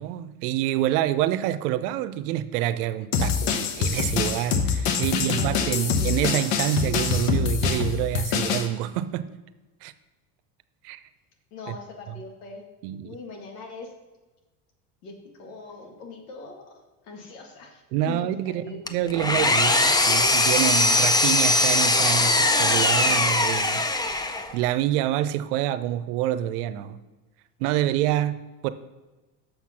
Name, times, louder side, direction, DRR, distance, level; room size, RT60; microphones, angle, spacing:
voice 1, 0.0-9.3 9.8-9.9 10.8-11.0 11.7-11.8 12.8-13.2 17.9-23.8 24.5-27.0 27.6-28.7, right 13 dB, 85° right, 13 dB, 0.7 m, -27 dB
sound 1, 3.1-8.7, left 6 dB, 70° left, 1.1 m, -25 dB
voice 2, 5.1-6.2 11.5-12.6 13.0-13.9 15.0-18.8, left 3 dB, 85° left, 2 dB, 1.8 m, -41 dB
Engine, 18.9-24.6, left 2 dB, 10° left, 0.5 m, -21 dB
6.9 x 5.9 x 5.8 m, 1.2 s
supercardioid pair, 95°, 45 cm